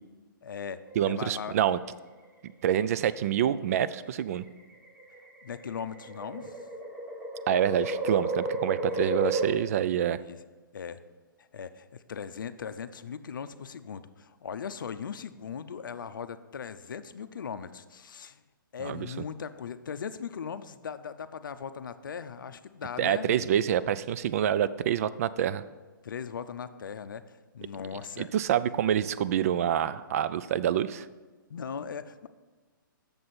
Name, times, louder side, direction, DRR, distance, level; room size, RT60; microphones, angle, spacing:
voice 1, 0.4-1.5 5.4-6.6 8.9-9.1 10.1-10.4 10.7-11.0 11.4-18.4 18.7-23.4 26.0-28.3 31.5-32.3, left 7 dB, 65° left, 12 dB, 0.5 m, -39 dB
sound 1, 0.9-1.7 2.9-3.3 4.2-9.5, right 2 dB, 15° right, 1.1 m, -33 dB
voice 2, 1.0-1.8 2.4-4.4 7.5-10.2 18.8-19.1 23.0-25.6 28.2-31.1, right 10 dB, 45° right, 15 dB, 0.4 m, -27 dB
7.5 x 6.9 x 4.2 m, 1.3 s
figure-of-eight pair, 130°, 11 cm